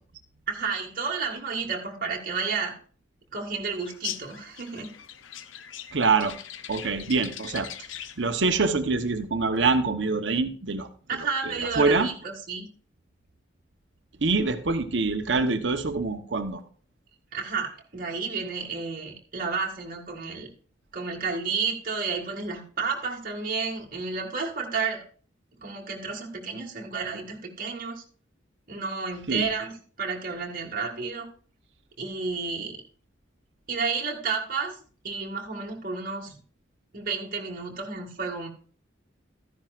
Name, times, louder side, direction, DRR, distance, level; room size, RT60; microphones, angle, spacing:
voice 1, 0.5-2.7 3.3-4.9 11.1-12.7 17.3-20.5 20.9-25.0 25.6-28.0 28.7-29.7 30.0-31.3 32.0-32.8 33.7-34.8 35.0-36.3 36.9-38.5, right 5 dB, 50° right, 0 dB, 1.9 m, -31 dB
sound 1, 3.8-8.3, left 10 dB, 90° left, 0.6 m, -40 dB
voice 2, 5.9-6.4 6.7-7.7 8.2-10.9 11.2-12.1 14.2-16.6 29.3-29.4, right 4 dB, 70° right, 8 dB, 1.0 m, -25 dB
13.5 x 10.5 x 2.5 m, 0.43 s
head